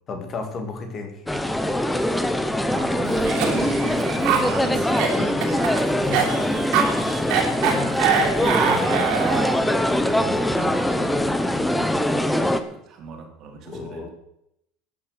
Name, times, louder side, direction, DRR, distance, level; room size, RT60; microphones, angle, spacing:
voice 1, 0.1-1.3 13.7-14.1, left 4 dB, 25° left, 5 dB, 2.3 m, -33 dB
sound 1, 1.3-12.6, left 1 dB, 5° left, 0.8 m, -23 dB
voice 2, 2.7-14.1, right 5 dB, 35° right, 3 dB, 2.9 m, -36 dB
Cough, 3.1-9.6, right 7 dB, 50° right, 3.2 m, -24 dB
13.5 x 10.0 x 6.5 m, 0.78 s
cardioid pair, 180°, 0 cm